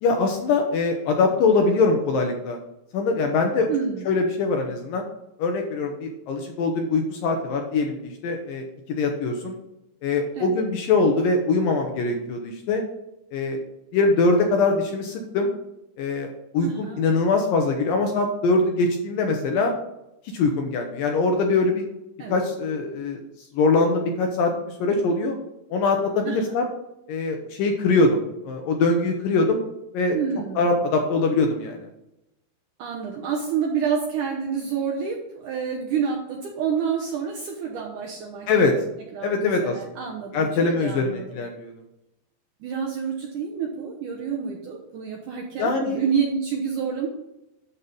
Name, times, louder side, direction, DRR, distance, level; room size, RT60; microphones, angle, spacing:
voice 1, 0.0-2.6 2.9-3.7 4.1-5.0 5.4-8.0 8.2-8.6 9.0-9.6 10.0-12.8 13.3-13.6 13.9-15.5 16.0-19.7 20.3-21.9 22.3-23.2 23.5-25.4 25.7-26.7 27.1-29.6 29.9-30.2 30.6-31.8 38.5-38.7 39.2-39.7 40.3-41.7 45.6-46.0, left 3 dB, 75° left, 3 dB, 2.2 m, -22 dB
voice 2, 3.7-4.1 10.4-10.6 16.6-17.1 22.2-22.4 26.2-26.6 30.1-30.8 32.8-38.8 39.1-41.4 42.6-47.1, right 6 dB, 70° right, -1 dB, 2.0 m, -28 dB
11.5 x 4.2 x 5.3 m, 0.89 s
omnidirectional pair, 4.7 m